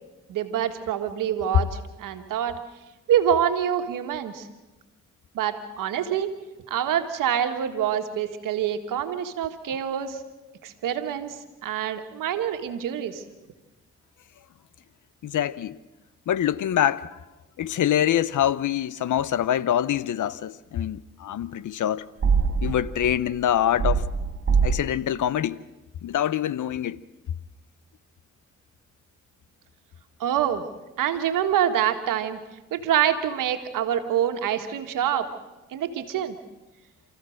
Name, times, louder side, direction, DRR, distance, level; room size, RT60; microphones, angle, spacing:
voice 1, 0.3-2.5 3.1-4.5 5.3-6.3 6.7-10.2 10.6-13.2 30.2-30.6 31.0-32.4 32.7-35.3 35.7-36.3, right 9 dB, 90° right, 1.6 m, -26 dB
voice 2, 15.2-15.8 16.3-17.2 17.6-22.1 22.6-24.1 24.6-25.6 26.0-27.0, left 10 dB, 70° left, 0.8 m, -25 dB
sound 1, 22.2-23.3 23.8-24.8, right 5 dB, 45° right, 1.8 m, -23 dB
28.0 x 14.5 x 6.5 m
cardioid pair, 60°, 31 cm